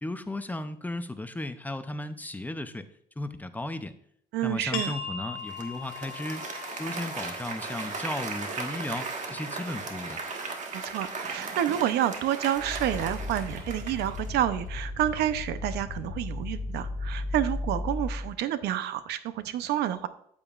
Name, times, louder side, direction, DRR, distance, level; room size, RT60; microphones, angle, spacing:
voice 1, 0.0-2.9 3.2-4.0 4.4-6.4 6.8-10.2, left 2 dB, 10° left, 10 dB, 0.5 m, -35 dB
voice 2, 4.3-4.9 10.7-20.1, right 11 dB, 80° right, 12 dB, 0.6 m, -29 dB
sound 1, 4.7-10.1, left 5 dB, 75° left, 1.6 m, -41 dB
Applause, 5.5-14.4, right 4 dB, 45° right, 1.4 m, -37 dB
sound 2, 12.5-18.3, left 2 dB, 60° left, 1.8 m, -35 dB
8.7 x 8.5 x 2.4 m, 0.67 s
cardioid pair, 110°, 17 cm